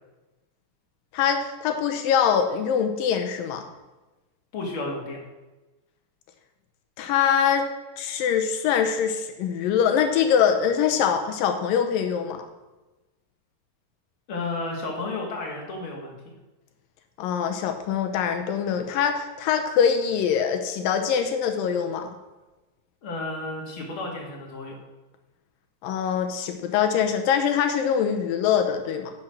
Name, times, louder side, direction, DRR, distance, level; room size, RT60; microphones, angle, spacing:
voice 1, 1.1-3.6 7.0-7.7 8.0-12.4 17.2-22.1 25.8-29.1, left 7 dB, 85° left, 5 dB, 2.6 m, -23 dB
voice 2, 4.5-5.2 14.3-16.2 23.0-24.8, left 2 dB, 40° left, -1 dB, 2.8 m, -32 dB
10.5 x 6.2 x 6.5 m, 1.1 s
omnidirectional pair, 3.9 m